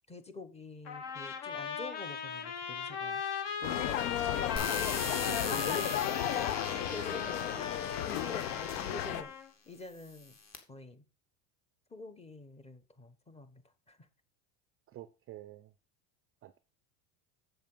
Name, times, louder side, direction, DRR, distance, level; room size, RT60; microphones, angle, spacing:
voice 1, 0.1-3.2 3.6-4.7 5.2-6.5 6.9-10.4 10.7-11.0 11.9-13.6 13.9-14.1, left 2 dB, 15° left, 1.1 m, -47 dB
Trumpet, 0.9-9.5, left 7 dB, 55° left, 2.7 m, -38 dB
sound 1, 3.6-9.2, left 12 dB, 85° left, 1.0 m, -34 dB
sound 2, 4.6-9.3 10.0-10.6, left 4 dB, 30° left, 2.1 m, -40 dB
voice 2, 5.0-5.9 14.9-15.7 16.4-16.6, right 13 dB, 30° right, 0.4 m, -48 dB
7.8 x 7.4 x 5.5 m
supercardioid pair, 135°, 50 cm